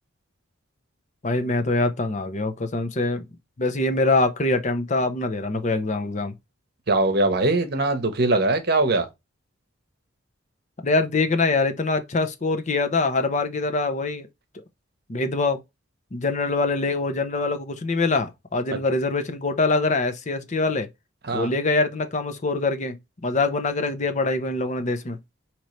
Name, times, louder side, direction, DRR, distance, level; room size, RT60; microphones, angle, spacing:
voice 1, 1.2-3.3 3.6-6.3 10.8-14.3 15.1-15.6 16.1-20.9 21.3-23.0 23.2-25.2, left 3 dB, 35° left, 0.6 m, -24 dB
voice 2, 6.9-9.1 21.2-21.5, right 2 dB, 50° right, 0.9 m, -21 dB
5.4 x 3.0 x 3.1 m
head